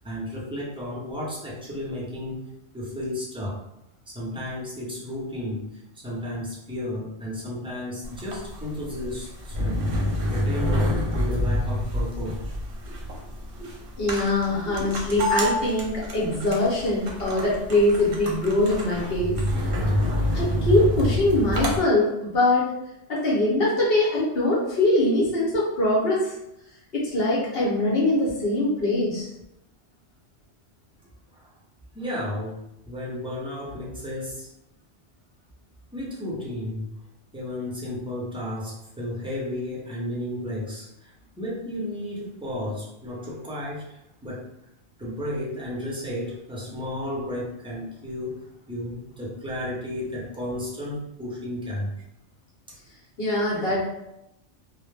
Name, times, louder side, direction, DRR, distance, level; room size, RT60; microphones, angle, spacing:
voice 1, 0.0-2.5 2.7-3.6 4.1-5.6 6.0-9.9 10.3-12.3 31.3-31.5 31.9-32.6 32.9-34.5 35.9-36.9 37.3-41.1 41.4-44.4 45.0-48.4 48.7-51.9, left 1 dB, 10° right, -6 dB, 0.3 m, -33 dB
sound 1, 8.0-21.8, equal, 60° right, 0.7 m, -27 dB
voice 2, 14.0-19.4 20.3-22.7 23.1-26.3 26.9-29.3 53.2-53.8, left 1 dB, 60° left, -5 dB, 0.9 m, -23 dB
2.1 x 2.1 x 3.1 m, 0.85 s
omnidirectional pair, 1.2 m